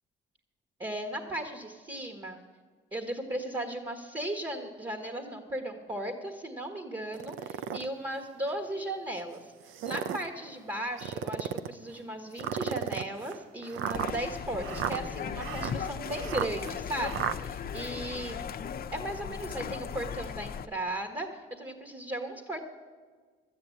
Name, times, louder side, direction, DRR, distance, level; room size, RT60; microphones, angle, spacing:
voice 1, 0.8-2.4 2.9-9.4 9.8-18.5 18.9-22.7, right 1 dB, 25° right, 5 dB, 1.5 m, -36 dB
sound 1, 7.1-7.9 8.5-8.6 9.6-10.3 11.0-11.7 12.4-17.4, right 9 dB, 85° right, 0.6 m, -34 dB
sound 2, 13.9-20.7, left 7 dB, 50° left, 0.7 m, -37 dB
12.5 x 8.8 x 8.4 m, 1.5 s
cardioid pair, 90°, 20 cm